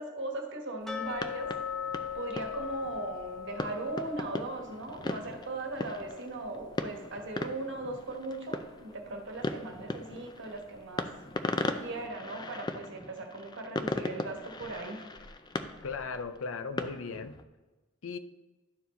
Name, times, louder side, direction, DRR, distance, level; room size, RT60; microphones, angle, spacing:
voice 1, 0.0-1.5 2.1-11.1 11.8-15.1, right 2 dB, 65° right, 2 dB, 1.2 m, -38 dB
sound 1, 0.9-7.7 8.0-8.1 8.6-8.7 9.2-9.3, left 8 dB, ahead, 0.8 m, -41 dB
sound 2, 1.0-17.4, left 2 dB, 20° left, 0.4 m, -39 dB
voice 2, 15.8-17.4 18.0-18.2, left 4 dB, 80° left, 10 dB, 0.5 m, -37 dB
12.0 x 4.6 x 4.1 m, 1.2 s
head